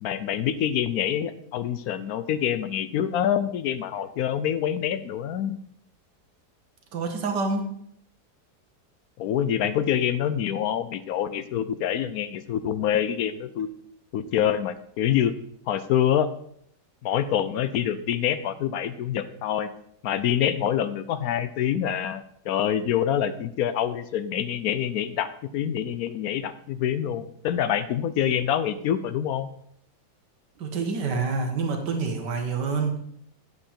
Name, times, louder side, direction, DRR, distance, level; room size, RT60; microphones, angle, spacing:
voice 1, 0.0-5.6 9.2-13.7 14.1-15.3 15.7-16.3 17.0-19.7 20.0-25.3 25.5-29.5, left 10 dB, 70° left, 13 dB, 1.0 m, -26 dB
voice 2, 6.9-7.7 30.6-33.0, right 4 dB, 85° right, 3 dB, 1.8 m, -27 dB
8.2 x 7.8 x 4.4 m, 0.67 s
omnidirectional pair, 1.8 m